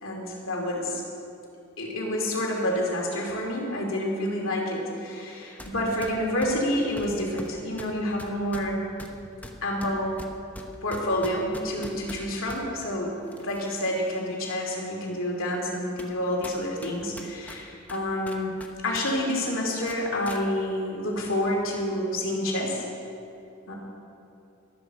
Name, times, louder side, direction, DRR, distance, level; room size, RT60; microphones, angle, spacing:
voice 1, 0.0-1.0 1.8-8.8 9.6-10.2 10.8-18.5 18.8-22.8 23.7-23.8, left 1 dB, 65° left, -1 dB, 2.9 m, -28 dB
sound 1, 5.6-5.7 6.0-12.6 13.3-14.0 14.5-14.6 15.3-15.4 16.0-16.2 16.4-19.1 19.3-19.5 19.9-20.4, left 1 dB, 5° left, 0.9 m, -42 dB
13.5 x 13.0 x 4.9 m, 2.7 s
head